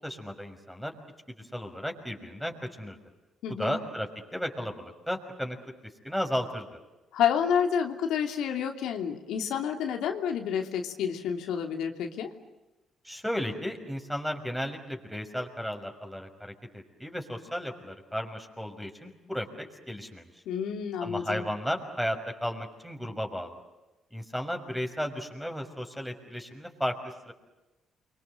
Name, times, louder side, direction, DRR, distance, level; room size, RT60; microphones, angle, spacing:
voice 1, 0.0-1.0 1.5-3.0 3.5-4.1 4.3-5.6 6.0-6.8 13.0-20.3 21.0-23.6 24.1-26.9 27.3-27.4, equal, ahead, 3 dB, 5.9 m, -34 dB
voice 2, 3.4-3.8 7.1-12.3 20.5-21.5, left 8 dB, 85° left, 4 dB, 2.9 m, -29 dB
29.5 x 24.5 x 7.9 m, 1.0 s
cardioid pair, 90°, 0 cm